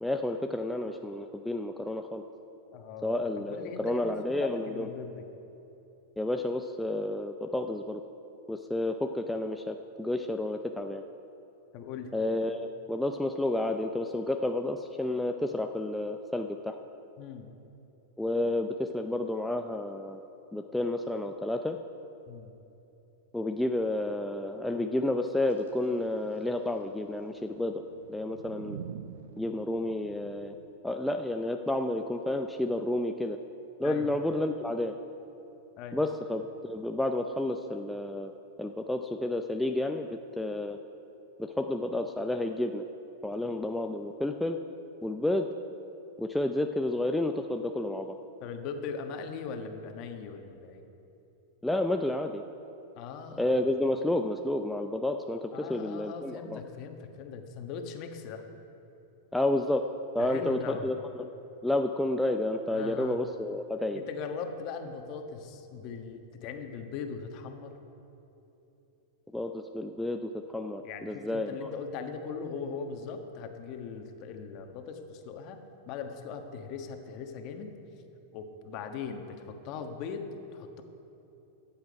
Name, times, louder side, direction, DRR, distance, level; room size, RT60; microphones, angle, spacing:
voice 1, 0.0-2.2 3.0-4.9 6.2-8.0 8.5-11.0 12.1-16.8 18.2-20.3 20.5-21.8 23.3-27.8 28.1-28.8 29.4-30.6 30.8-33.4 33.8-34.9 35.9-38.3 38.6-40.1 40.4-40.8 41.4-42.9 43.2-44.6 45.0-45.5 46.2-48.2 51.6-52.4 53.4-56.6 59.3-59.9 60.1-61.3 61.6-64.0 69.3-71.7, left 1 dB, 5° left, 4 dB, 0.4 m, -30 dB
voice 2, 2.7-5.2 11.7-12.1 17.2-17.5 22.3-22.5 33.8-34.1 35.8-36.0 48.4-50.8 52.9-53.5 55.5-58.4 60.2-60.9 62.7-63.2 63.9-67.8 70.8-75.6 75.9-77.7 78.3-80.2 80.5-80.8, left 6 dB, 45° left, 5 dB, 1.3 m, -40 dB
sound 1, 25.5-30.7, right 8 dB, 80° right, 0.5 m, -47 dB
14.5 x 8.7 x 5.2 m, 3.0 s
hypercardioid pair, 130°, 0 cm